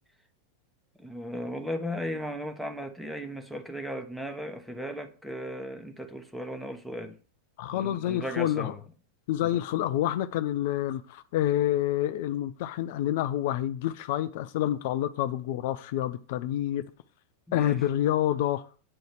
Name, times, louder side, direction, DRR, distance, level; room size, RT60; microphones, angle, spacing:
voice 1, 1.0-7.2 7.7-8.8 9.4-9.6 17.5-17.8, equal, ahead, 1.2 m, -36 dB
voice 2, 7.6-8.7 9.3-16.8 17.5-18.6, left 12 dB, 50° left, 0.5 m, -28 dB
8.7 x 3.9 x 6.5 m
figure-of-eight pair, 90°, 0 cm